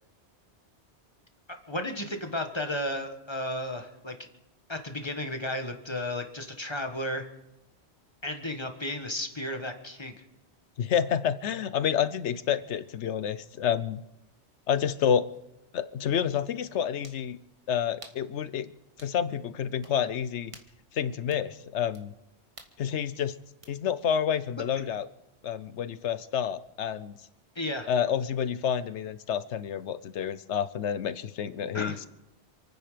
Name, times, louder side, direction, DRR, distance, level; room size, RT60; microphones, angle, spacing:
voice 1, 1.7-4.1 4.7-7.3 8.2-10.2 27.5-27.9 31.7-32.0, left 1 dB, 25° left, 5 dB, 1.6 m, -33 dB
voice 2, 10.8-14.0 14.7-15.3 15.7-17.4 17.7-18.7 19.0-20.5 20.9-22.1 22.8-23.3 23.7-25.1 25.4-27.2 27.9-32.1, left 8 dB, 85° left, 14 dB, 1.1 m, -29 dB
sound 1, 15.3-15.4 17.0-17.3 18.0-18.3 19.0-19.2 19.8-20.0 20.5-20.8 21.3-21.5 21.9-22.0 22.6-22.8 23.6-23.7, right 2 dB, 30° right, 1.6 m, -50 dB
28.5 x 9.6 x 5.1 m, 0.94 s
omnidirectional pair, 1.1 m